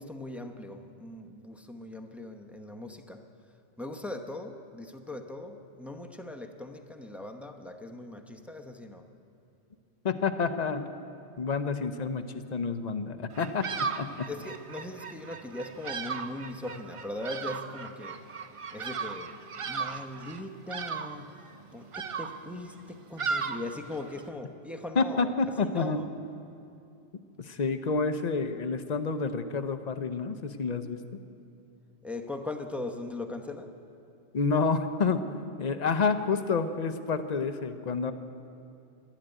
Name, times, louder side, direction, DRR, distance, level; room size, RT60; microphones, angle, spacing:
voice 1, 0.0-3.3 3.8-9.1 14.3-18.2 18.7-19.4 19.6-21.3 21.7-25.3 25.6-26.1 32.0-33.8, left 2 dB, ahead, 5 dB, 0.7 m, -40 dB
voice 2, 10.0-10.9 11.4-12.2 12.5-14.3 25.0-26.0 27.4-31.0 34.3-35.2 35.6-38.1, left 4 dB, 40° left, 9 dB, 0.7 m, -29 dB
Bird vocalization bird call bird song, 13.3-24.3, right 5 dB, 55° right, 0.3 m, -37 dB
12.5 x 11.5 x 9.1 m, 2.7 s
omnidirectional pair, 1.2 m